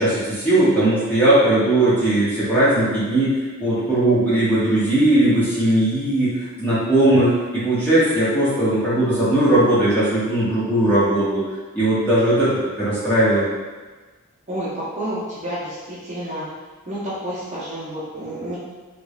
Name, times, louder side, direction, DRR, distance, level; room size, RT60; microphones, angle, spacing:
voice 1, 0.0-11.4 11.7-13.5, right 1 dB, 10° left, -11 dB, 1.1 m, -18 dB
voice 2, 14.5-16.5 16.9-18.6, right 1 dB, 30° right, -9 dB, 0.9 m, -29 dB
3.5 x 3.2 x 2.4 m, 1.3 s
head